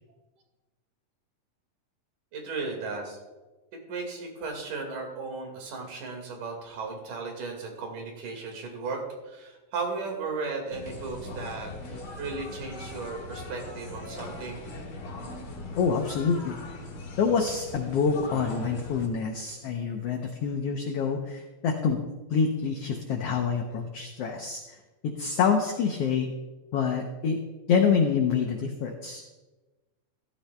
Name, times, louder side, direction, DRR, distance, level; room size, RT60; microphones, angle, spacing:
voice 1, 2.3-3.2 3.9-14.6, right 4 dB, 75° right, 2 dB, 3.5 m, -35 dB
sound 1, 10.7-19.1, left 2 dB, 50° left, 1.2 m, -40 dB
voice 2, 15.8-16.6 17.2-22.0 22.3-24.6 25.0-26.3 26.7-27.4 27.7-29.2, left 6 dB, 80° left, 4 dB, 1.4 m, -26 dB
14.5 x 12.5 x 2.2 m, 1.2 s
omnidirectional pair, 3.7 m